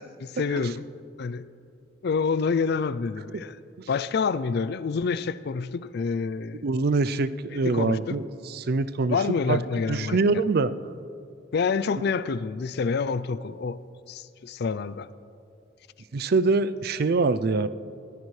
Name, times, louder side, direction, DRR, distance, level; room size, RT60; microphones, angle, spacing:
voice 1, 0.2-0.9 1.2-1.5 2.0-3.6 3.9-6.6 7.5-8.2 9.1-10.2 11.5-13.8 14.1-15.1, left 5 dB, 55° left, 16 dB, 0.4 m, -27 dB
voice 2, 6.6-8.3 8.5-9.2 9.5-9.6 9.9-10.7 16.1-17.7, right 3 dB, 50° right, 14 dB, 0.4 m, -24 dB
21.0 x 14.5 x 3.2 m, 2.5 s
head